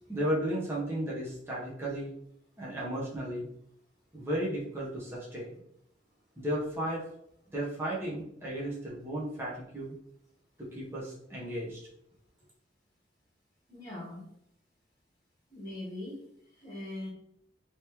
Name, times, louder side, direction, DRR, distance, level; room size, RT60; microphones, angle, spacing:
voice 1, 0.1-2.1 2.6-3.4 4.1-5.5 6.4-7.0 7.5-9.9 10.6-11.8, right 1 dB, 15° right, -7 dB, 0.8 m, -34 dB
voice 2, 13.7-14.2 15.5-16.3 16.6-17.1, left 1 dB, 20° left, -6 dB, 1.2 m, -41 dB
3.0 x 2.9 x 3.4 m, 0.72 s
head